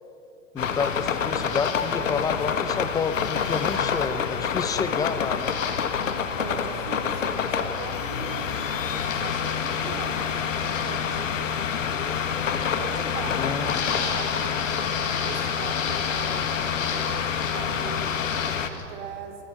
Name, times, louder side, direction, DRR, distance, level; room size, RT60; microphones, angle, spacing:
voice 1, 0.5-5.5 13.4-13.8, left 5 dB, 10° left, 11 dB, 0.7 m, -29 dB
sound 1, 0.6-18.7, left 7 dB, 90° left, 1.5 m, -27 dB
sound 2, 0.6-2.3 2.9-4.0 5.4-6.1 7.3-7.9 8.2-10.0 10.4-11.0 12.5-13.2 13.5-18.8, left 6 dB, 60° left, 4.4 m, -36 dB
voice 2, 6.4-11.7 12.8-16.4 16.9-18.2 18.7-19.4, right 5 dB, 50° right, 2 dB, 3.4 m, -40 dB
29.0 x 15.5 x 5.9 m, 2.9 s
hypercardioid pair, 125°, 37 cm